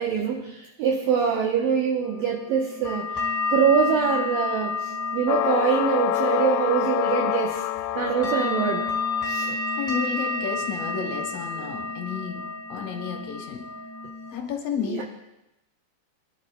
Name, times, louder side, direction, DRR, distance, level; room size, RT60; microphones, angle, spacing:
voice 1, 0.0-3.2 3.5-7.7 8.0-8.8 9.2-9.6 14.9-15.0, right 7 dB, 75° right, 0 dB, 2.2 m, -24 dB
sound 1, 2.0-14.3, left 4 dB, 10° left, 1.5 m, -31 dB
sound 2, 5.3-9.3, left 15 dB, 85° left, 2.7 m, -27 dB
voice 2, 9.8-13.6 14.3-15.1, left 6 dB, 65° left, 2 dB, 2.4 m, -31 dB
25.0 x 11.0 x 2.2 m, 0.93 s
omnidirectional pair, 4.9 m